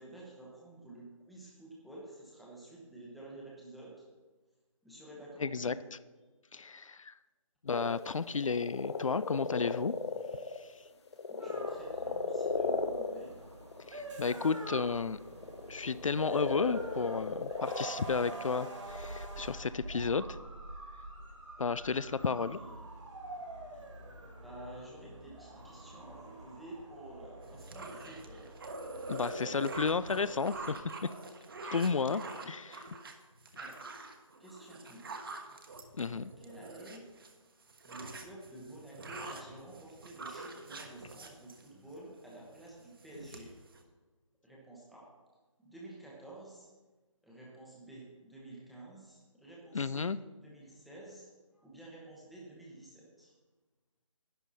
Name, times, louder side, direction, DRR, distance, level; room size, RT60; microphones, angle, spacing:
voice 1, 0.0-4.1 4.8-5.9 11.3-13.4 14.3-14.6 22.2-22.7 24.4-28.5 33.6-33.9 34.4-35.2 36.1-37.0 37.8-43.5 44.4-45.1 45.6-46.7 47.2-50.1 50.3-51.3 51.5-53.3, right 1 dB, ahead, -5 dB, 0.9 m, -50 dB
voice 2, 5.4-5.7 6.5-7.1 7.6-9.9 10.6-10.7 13.9-15.2 15.7-20.4 21.6-22.6 29.1-31.1 31.6-32.9 36.0-36.3 49.7-50.2, left 5 dB, 70° left, 16 dB, 0.5 m, -33 dB
sound 1, 7.7-14.0 15.2-19.3, left 4 dB, 50° left, 0.9 m, -36 dB
sound 2, 11.4-30.7, right 2 dB, 65° right, 2.6 m, -46 dB
sound 3, 27.4-37.3 37.6-42.0 42.4-42.7 43.0-43.8, right 2 dB, 40° right, 1.3 m, -45 dB
11.0 x 9.6 x 4.1 m, 1.3 s
figure-of-eight pair, 165°, 17 cm